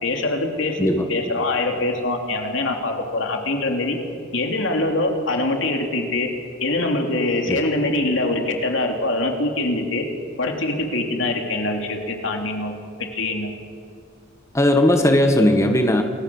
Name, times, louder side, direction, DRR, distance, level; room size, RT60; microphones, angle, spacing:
voice 1, 0.0-4.0 4.3-6.3 6.6-10.0 10.4-12.7 13.0-13.5, left 2 dB, 70° left, 3 dB, 3.3 m, -23 dB
voice 2, 14.5-16.0, left 1 dB, 15° left, 4 dB, 1.6 m, -17 dB
28.5 x 21.5 x 7.3 m, 2.3 s
head